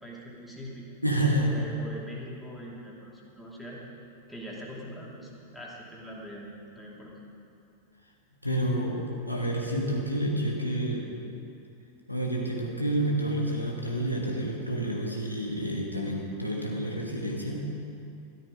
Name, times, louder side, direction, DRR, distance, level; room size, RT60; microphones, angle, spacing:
voice 1, 0.0-0.9 1.4-3.8 4.3-7.1, equal, ahead, -5 dB, 2.7 m, -42 dB
voice 2, 1.0-1.5 8.4-11.1 12.1-17.6, right 1 dB, 90° left, -2 dB, 1.7 m, -29 dB
13.5 x 12.0 x 5.0 m, 2.5 s
figure-of-eight pair, 90°, 0 cm